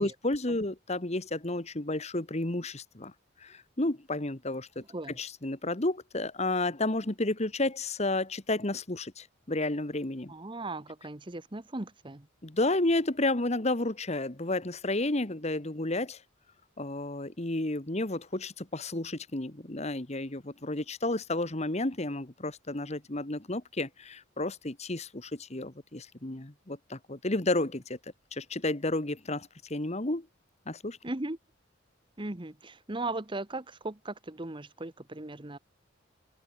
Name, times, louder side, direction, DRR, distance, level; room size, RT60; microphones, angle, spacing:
voice 1, 0.0-3.1 3.4-4.8 5.2-10.3 12.4-16.2 16.8-28.0 28.3-30.3 30.7-31.0, left 2 dB, 35° left, 1.6 m, -31 dB
voice 2, 4.8-5.2 10.3-12.3 31.0-31.4 32.2-35.6, right 2 dB, 25° right, 1.1 m, -38 dB
head